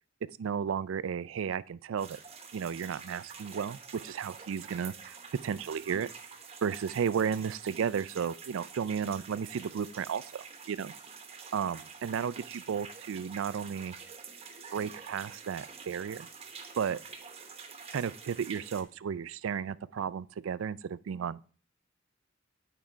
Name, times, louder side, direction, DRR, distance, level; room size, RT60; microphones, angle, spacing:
voice 1, 0.4-2.2 2.5-3.8 4.0-5.2 5.4-6.1 6.6-10.9 11.5-13.9 14.7-16.3 16.8-17.0 17.9-21.5, right 7 dB, 75° right, 0.4 m, -33 dB
sound 1, 2.0-18.8, right 5 dB, 30° right, 1.0 m, -48 dB
9.4 x 5.0 x 4.4 m
head